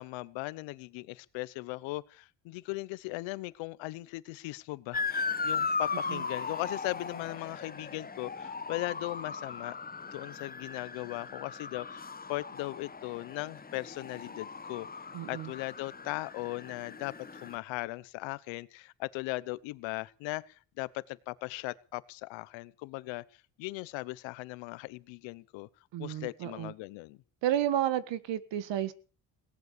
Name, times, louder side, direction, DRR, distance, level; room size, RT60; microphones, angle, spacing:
voice 1, 0.0-9.8 10.1-14.9 15.3-23.2 23.6-25.7 26.0-27.2, left 21 dB, 90° left, 1.0 m, -38 dB
Motor vehicle (road) / Siren, 4.9-17.6, left 4 dB, 20° left, 1.1 m, -38 dB
voice 2, 15.1-15.5 25.9-26.7 27.4-28.9, right 11 dB, 75° right, 1.8 m, -31 dB
18.5 x 11.0 x 6.8 m
supercardioid pair, 75°, 44 cm